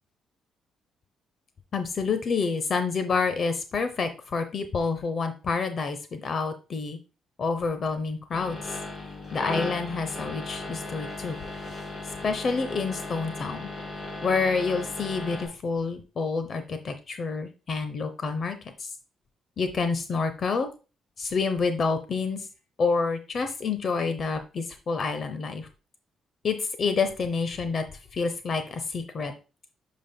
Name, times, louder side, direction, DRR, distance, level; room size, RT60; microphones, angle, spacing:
voice 1, 1.7-7.0 7.4-8.8 9.3-11.4 12.2-13.7 14.2-18.9 19.6-20.7 21.2-22.5 22.8-25.7 26.4-27.8 28.1-29.3, left 4 dB, 45° left, 9 dB, 0.6 m, -28 dB
sound 1, 8.3-15.5, left 2 dB, 25° left, 3.5 m, -36 dB
9.2 x 5.1 x 2.2 m, 0.33 s
cardioid pair, 125°, 0 cm